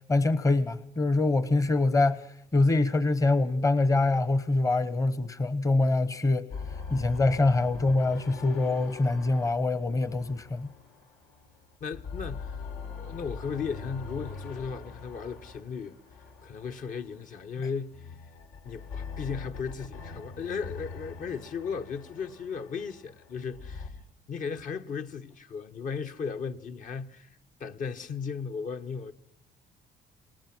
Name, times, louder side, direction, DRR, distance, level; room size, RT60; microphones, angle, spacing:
voice 1, 0.1-2.2 2.5-6.5 6.9-10.7, left 2 dB, 20° left, 1.0 m, -24 dB
sound 1, 6.5-11.5 11.8-17.1 17.9-23.9, left 4 dB, 85° left, 4.4 m, -42 dB
voice 2, 11.8-12.6 13.0-16.0 16.4-18.0 18.6-23.9 24.3-27.3 27.6-29.1, left 6 dB, 50° left, 1.4 m, -36 dB
28.0 x 19.5 x 6.2 m
cardioid pair, 110°, 17 cm